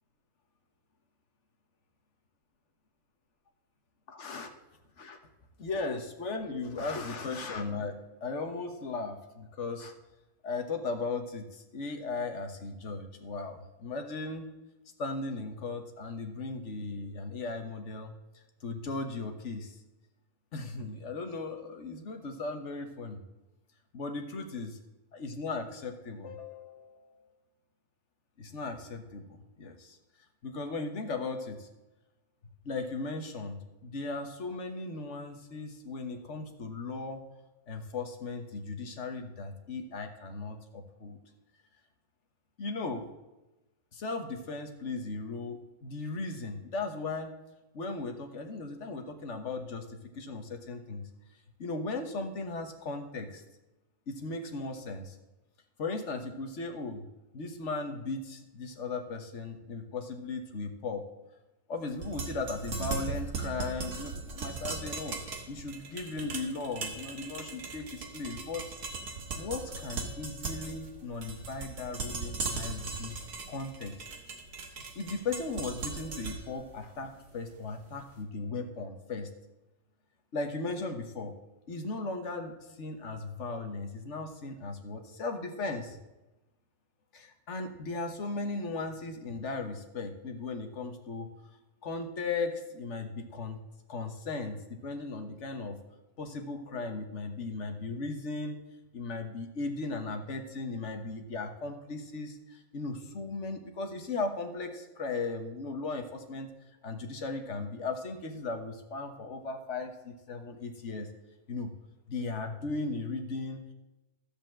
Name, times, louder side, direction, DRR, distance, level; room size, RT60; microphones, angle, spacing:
voice 1, 4.1-4.5 5.0-5.2 5.6-7.9 8.2-9.9 10.4-14.5 15.0-18.1 18.6-19.7 20.5-23.2 23.9-24.8 25.1-27.3 28.4-30.0 30.4-31.7 32.6-37.2 37.7-41.2 42.6-43.1 43.9-47.3 47.7-51.0 51.6-53.4 54.1-55.2 55.8-57.0 57.3-61.0 61.7-65.2 65.5-68.7 69.3-73.2 73.5-73.9 74.9-79.3 80.3-81.3 81.7-86.0 87.1-91.3 91.8-93.6 93.9-95.8 96.2-98.6 98.9-106.5 106.8-111.1 111.5-111.7 112.1-113.7, left 3 dB, 50° left, 5 dB, 1.4 m, -37 dB
sound 1, 61.9-78.0, right 4 dB, 70° right, 1.9 m, -39 dB
13.5 x 5.2 x 7.6 m, 1.0 s
omnidirectional pair, 1.7 m